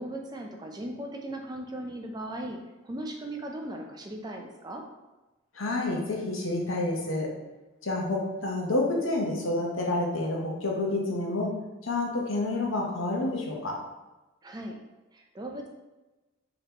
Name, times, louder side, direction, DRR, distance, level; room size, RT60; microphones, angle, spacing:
voice 1, 0.0-2.6 2.8-4.8 14.4-14.8 15.1-15.7, right 1 dB, 20° right, 2 dB, 0.4 m, -37 dB
voice 2, 5.5-7.3 7.8-11.6 11.8-13.8, left 2 dB, 80° left, -1 dB, 0.9 m, -29 dB
5.2 x 3.0 x 2.9 m, 1.1 s
head